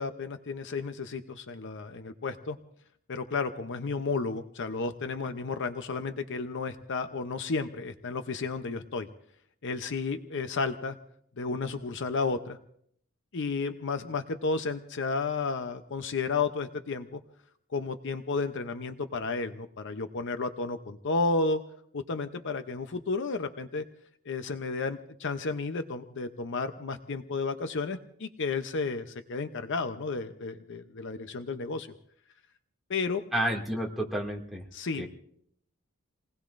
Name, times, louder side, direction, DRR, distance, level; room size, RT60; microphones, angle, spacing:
voice 1, 0.0-2.6 3.1-9.1 9.6-11.0 11.4-12.6 13.3-17.2 17.7-21.6 21.9-23.8 24.3-31.9 32.9-33.2 34.7-35.0, left 4 dB, 55° left, 9 dB, 0.7 m, -32 dB
voice 2, 33.3-34.6 35.0-35.1, right 1 dB, ahead, -2 dB, 2.2 m, -30 dB
28.5 x 19.5 x 2.6 m, 0.66 s
head